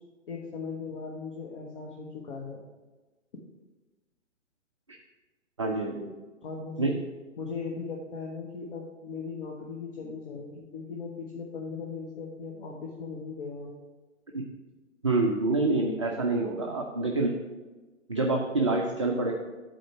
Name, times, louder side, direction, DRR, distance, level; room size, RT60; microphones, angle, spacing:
voice 1, 0.3-2.6 6.4-7.0 7.4-13.8, left 5 dB, 45° left, -2 dB, 1.1 m, -38 dB
voice 2, 5.6-6.1 6.8-7.0 14.3-14.4 15.0-17.3 18.1-19.3, right 2 dB, 25° right, 0 dB, 0.3 m, -26 dB
7.7 x 4.3 x 5.8 m, 1.2 s
figure-of-eight pair, 130°, 38 cm